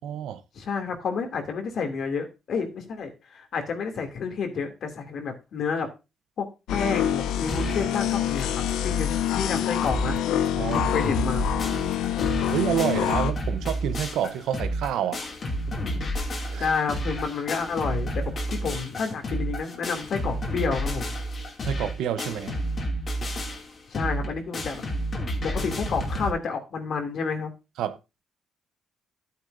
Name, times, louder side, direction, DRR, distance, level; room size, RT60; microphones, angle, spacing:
voice 1, 0.0-0.4 10.6-10.9 12.5-15.3 16.5-16.7 21.6-22.6 27.8-28.0, right 9 dB, 85° right, 0.8 m, -28 dB
voice 2, 0.6-5.9 6.4-10.2 10.7-11.6 15.8-21.1 23.9-24.8 25.4-27.5, left 5 dB, 65° left, 2.7 m, -30 dB
sound 1, 6.7-13.3, left 10 dB, 85° left, 0.8 m, -26 dB
sound 2, 7.5-7.9 8.4-8.5 8.7-8.8 9.3-9.4 9.6-10.2 10.4-26.3, equal, 45° left, 2.6 m, -30 dB
11.5 x 9.7 x 2.7 m
cardioid pair, 90°, 0 cm